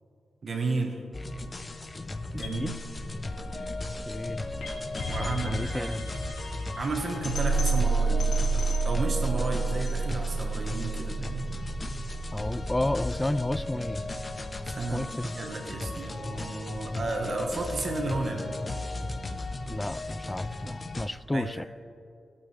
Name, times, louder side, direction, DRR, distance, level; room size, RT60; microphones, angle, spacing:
voice 1, 0.4-1.0 2.3-2.8 5.1-6.1 6.8-8.3 8.8-11.5 14.6-15.1 15.3-18.5 21.3-21.5, right 3 dB, 45° right, 2 dB, 1.6 m, -32 dB
sound 1, 1.1-21.1, left 2 dB, 30° left, 0.9 m, -36 dB
voice 2, 2.3-2.8 4.0-4.4 5.2-6.0 12.3-14.0 14.9-15.3 19.7-21.7, left 1 dB, 15° left, 16 dB, 0.3 m, -32 dB
sound 2, 2.4-14.4, right 3 dB, 85° left, 3.2 m, -30 dB
23.0 x 8.8 x 3.5 m, 2.5 s
cardioid pair, 95°, 0 cm